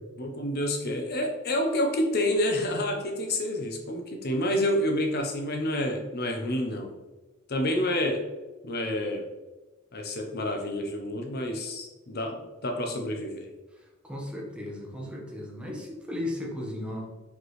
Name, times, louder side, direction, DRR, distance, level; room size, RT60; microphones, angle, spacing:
voice 1, 0.2-6.9 7.5-8.3 8.6-9.2 9.9-13.5, left 1 dB, 45° left, 3 dB, 0.7 m, -28 dB
voice 2, 14.0-17.0, left 1 dB, 5° right, -2 dB, 1.2 m, -35 dB
6.0 x 5.2 x 3.2 m, 1.2 s
head